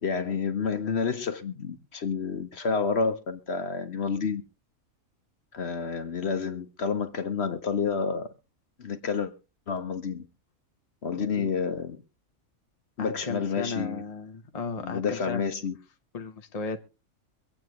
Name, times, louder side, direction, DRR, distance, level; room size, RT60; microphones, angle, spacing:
voice 1, 0.0-4.4 5.5-8.3 8.8-9.3 9.7-10.2 11.0-12.0 13.0-14.0 14.8-15.7, left 5 dB, 55° left, 1.2 m, -29 dB
voice 2, 11.1-11.5 13.0-15.4 16.1-16.8, left 4 dB, 30° left, 0.9 m, -35 dB
24.5 x 8.7 x 3.1 m
omnidirectional pair, 1.5 m